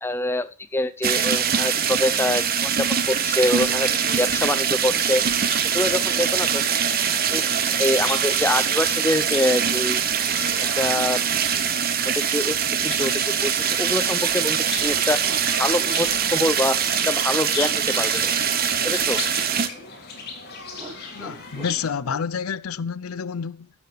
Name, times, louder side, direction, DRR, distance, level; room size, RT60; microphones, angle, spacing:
voice 1, 0.0-3.9 4.2-5.2 5.7-6.8 7.3-7.4 7.8-10.0 10.7-11.2 12.2-12.6 12.8-15.2 15.6-16.8 17.1-18.3 18.8-19.2, left 1 dB, 10° left, 0.5 m, -25 dB
sound 1, 1.0-19.7, right 8 dB, 45° right, 0.9 m, -23 dB
sound 2, 2.1-21.9, left 4 dB, 50° left, 3.3 m, -39 dB
sound 3, 7.0-7.6 9.1-9.7 10.7-11.8 14.8-16.1 18.8-20.4 20.6-22.3, right 1 dB, 25° right, 1.3 m, -44 dB
voice 2, 21.1-23.7, left 6 dB, 80° left, 0.5 m, -29 dB
12.5 x 6.7 x 4.6 m
head